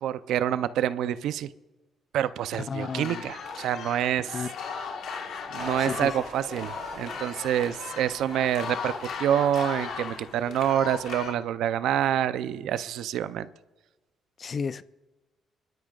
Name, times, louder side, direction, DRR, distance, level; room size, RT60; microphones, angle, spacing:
voice 1, 0.0-1.5 2.1-4.4 5.5-8.9 9.2-13.5, right 10 dB, 80° right, 0.5 m, -27 dB
voice 2, 2.5-3.3 4.3-4.5 5.8-6.2 14.4-14.8, left 5 dB, 45° left, 0.5 m, -33 dB
sound 1, 2.8-11.3, left 6 dB, 75° left, 1.4 m, -37 dB
sound 2, 5.6-10.6, right 4 dB, 50° right, 4.9 m, -45 dB
25.0 x 12.0 x 2.4 m
cardioid pair, 90°, 0 cm